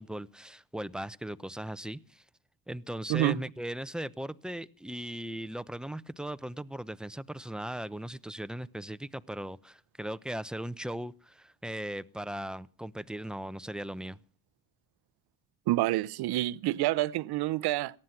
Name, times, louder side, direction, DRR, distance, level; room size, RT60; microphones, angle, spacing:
voice 1, 0.0-2.2 2.7-14.2, right 1 dB, ahead, 0.8 m, -38 dB
voice 2, 15.7-18.0, right 16 dB, 65° right, 0.8 m, -28 dB
18.5 x 13.5 x 5.9 m
hypercardioid pair, 60°, 41 cm